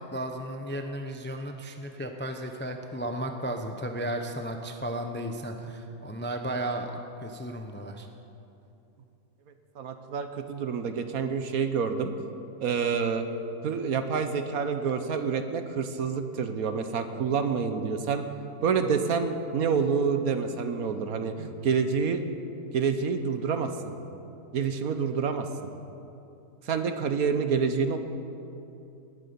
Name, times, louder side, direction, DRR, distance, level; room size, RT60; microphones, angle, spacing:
voice 1, 0.0-8.1, right 1 dB, 10° left, 4 dB, 0.5 m, -34 dB
voice 2, 9.7-12.1 12.6-13.2 13.6-18.2 18.6-22.2 22.7-23.9 24.5-25.5 26.6-28.0, right 6 dB, 65° right, 8 dB, 1.3 m, -28 dB
19.0 x 9.7 x 6.9 m, 2.8 s
omnidirectional pair, 1.7 m